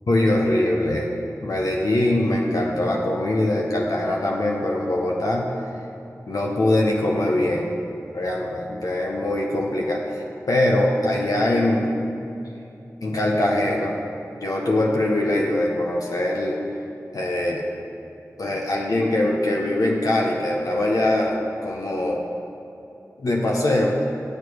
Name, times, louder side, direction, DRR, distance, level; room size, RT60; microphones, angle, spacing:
voice 1, 0.1-1.1 1.4-5.5 6.3-7.7 8.1-12.0 13.0-14.0 14.4-16.6 17.1-17.6 18.4-22.2 23.2-24.1, left 1 dB, 80° left, -1 dB, 0.9 m, -22 dB
8.9 x 6.7 x 4.7 m, 2.8 s
wide cardioid pair, 65°, 6 cm